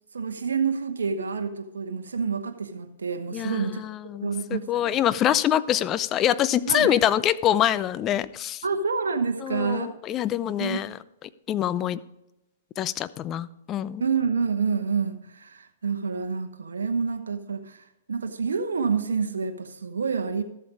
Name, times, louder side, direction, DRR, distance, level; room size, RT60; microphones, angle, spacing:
voice 1, 0.1-3.8 4.2-5.0 6.7-7.0 8.6-10.0 10.6-10.8 14.0-20.4, right 5 dB, 80° right, 7 dB, 1.0 m, -28 dB
voice 2, 3.3-8.6 9.4-11.0 11.5-12.0 12.8-14.0, left 11 dB, 30° left, 16 dB, 0.6 m, -25 dB
13.5 x 7.7 x 4.9 m, 0.90 s
hypercardioid pair, 120°, 0 cm